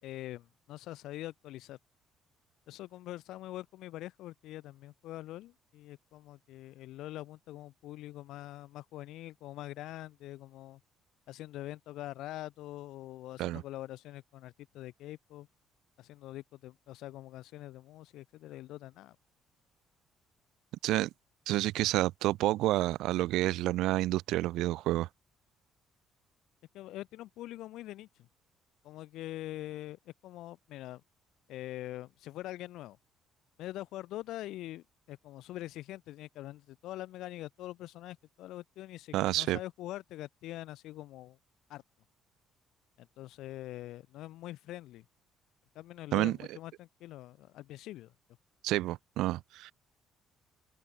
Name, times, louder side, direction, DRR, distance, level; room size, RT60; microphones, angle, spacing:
voice 1, 0.0-1.8 2.7-10.8 11.3-15.5 16.0-19.1 26.7-28.3 28.8-31.0 31.5-33.0 33.6-41.4 41.7-41.8 43.0-45.0 45.7-48.1, left 15 dB, 80° left, 4.7 m, -44 dB
voice 2, 21.5-25.1 39.1-39.6 46.1-46.6 48.6-49.7, right 16 dB, 90° right, 0.7 m, -29 dB
open air
cardioid pair, 135°, 0 cm